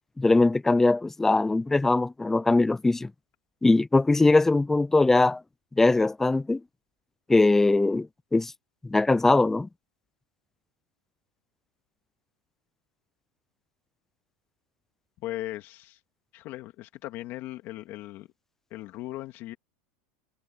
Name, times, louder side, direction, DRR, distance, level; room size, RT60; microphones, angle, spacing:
voice 1, 0.2-3.1 3.6-5.4 5.8-6.6 7.3-8.5 8.8-9.7, left 2 dB, 5° left, 0.4 m, -21 dB
voice 2, 15.2-16.0 16.3-18.3 18.7-19.6, left 16 dB, 45° left, 2.2 m, -38 dB
supercardioid pair, 145°, 5 cm